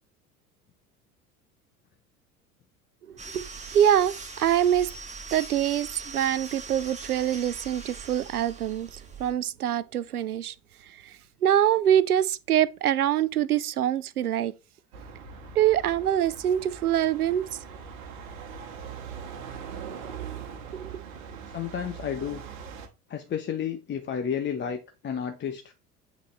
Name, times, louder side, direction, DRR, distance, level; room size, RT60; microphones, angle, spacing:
voice 1, 3.1-3.4 3.7-4.9 5.3-10.5 11.0-11.1 11.4-14.5 15.6-17.4 20.7-21.0, right 10 dB, 85° right, 0.5 m, -24 dB
sound 1, 3.2-9.3, right 4 dB, 15° right, 1.6 m, -41 dB
sound 2, 14.9-22.9, right 7 dB, 65° right, 1.5 m, -41 dB
voice 2, 21.5-22.4 23.1-25.7, left 8 dB, 25° left, 0.9 m, -31 dB
8.1 x 4.0 x 3.3 m
figure-of-eight pair, 70°, 43 cm